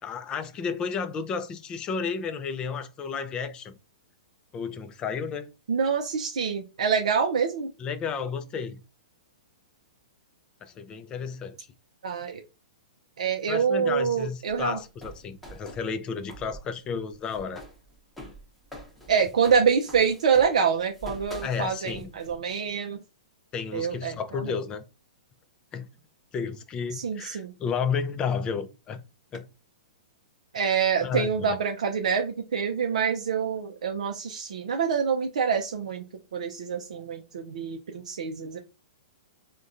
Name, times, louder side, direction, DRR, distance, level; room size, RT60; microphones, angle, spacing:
voice 1, 0.0-3.7 4.5-5.5 7.8-8.8 10.6-11.6 13.5-17.6 21.4-22.1 23.5-24.8 25.7-25.9 26.3-29.0 29.3-29.5 31.0-31.6, left 6 dB, 25° left, 0.4 m, -32 dB
voice 2, 5.7-7.7 12.0-12.4 13.2-14.8 19.1-23.0 23.7-24.6 26.9-27.5 30.5-36.0 36.3-38.6, right 6 dB, 70° right, 0.4 m, -26 dB
sound 1, 14.5-16.6 16.9-22.6, equal, 5° left, 0.8 m, -45 dB
3.5 x 2.2 x 2.5 m
hypercardioid pair, 120°, 4 cm